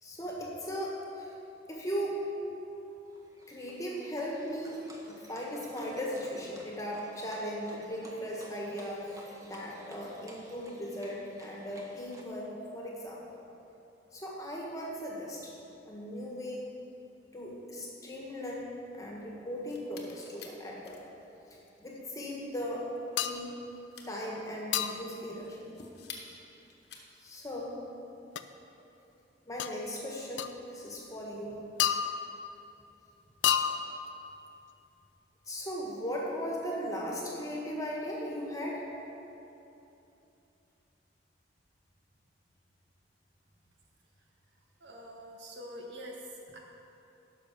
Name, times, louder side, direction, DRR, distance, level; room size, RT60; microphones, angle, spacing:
voice 1, 0.0-1.3 1.7-2.3 3.5-4.8 5.0-13.2 14.1-15.5 15.9-16.6 17.3-21.0 21.8-22.9 23.2-23.5 24.1-25.6 27.2-27.8 29.4-31.6 35.5-38.8, equal, 20° left, -3 dB, 1.6 m, -38 dB
Livestock farm animals working animals, 3.1-12.2, equal, 20° right, 1.0 m, -53 dB
sound 1, 19.5-27.4, left 5 dB, 65° left, 1.2 m, -52 dB
sound 2, 23.2-23.5 24.7-25.1 28.4-28.5 29.6-29.8 30.4-30.5 31.8-32.5 33.4-34.1, left 9 dB, 85° left, 0.4 m, -30 dB
voice 2, 44.8-46.6, equal, 75° right, 0 dB, 1.4 m, -45 dB
10.5 x 6.2 x 6.0 m, 2.9 s
head